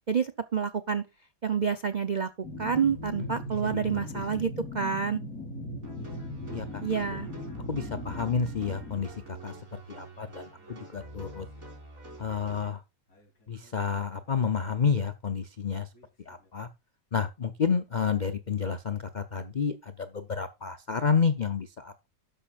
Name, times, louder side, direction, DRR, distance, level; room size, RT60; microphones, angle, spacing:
voice 1, 0.1-1.0 1.4-2.3 2.6-5.2 6.8-7.3, right 6 dB, 75° right, 0.4 m, -28 dB
sound 1, 2.4-9.0 10.6-10.8 11.2-11.6 13.1-13.2 13.6-14.1 15.9-16.3, left 1 dB, 60° left, 3.9 m, -39 dB
voice 2, 3.6-4.4 6.5-6.8 7.7-11.5 12.2-12.8 13.5-15.9 16.3-16.7 17.1-22.1, left 6 dB, 75° left, 0.4 m, -30 dB
sound 2, 5.8-12.7, right 2 dB, 50° right, 4.7 m, -46 dB
12.5 x 10.0 x 2.4 m
omnidirectional pair, 1.8 m